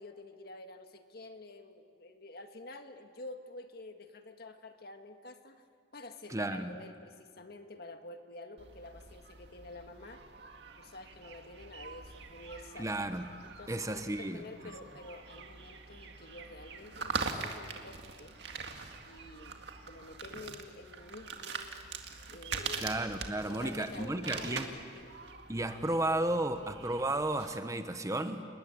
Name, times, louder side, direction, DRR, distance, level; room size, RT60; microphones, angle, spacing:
voice 1, 0.0-5.7 5.9-10.2 10.8-12.9 13.4-18.4 19.1-19.6 19.8-21.7 22.3-22.9 23.5-25.1, left 2 dB, 55° left, 6 dB, 1.8 m, -49 dB
voice 2, 6.3-6.7 12.8-13.3 13.7-14.4 22.8-24.7 25.5-28.4, right 1 dB, 20° right, 8 dB, 1.1 m, -33 dB
sound 1, 8.6-27.6, right 4 dB, 65° right, 2.1 m, -43 dB
29.0 x 20.5 x 8.7 m, 2.1 s
head